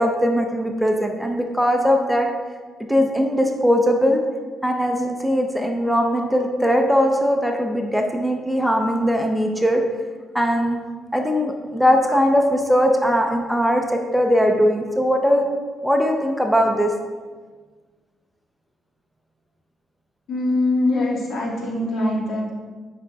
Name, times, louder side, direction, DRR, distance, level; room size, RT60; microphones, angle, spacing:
voice 1, 0.0-2.3 2.9-4.2 4.6-9.8 10.3-10.8 11.1-15.5 15.8-16.9, equal, ahead, 3 dB, 0.6 m, -20 dB
voice 2, 20.3-22.5, left 2 dB, 70° left, -3 dB, 1.6 m, -22 dB
8.4 x 5.2 x 2.3 m, 1.4 s
cardioid pair, 90°, 0 cm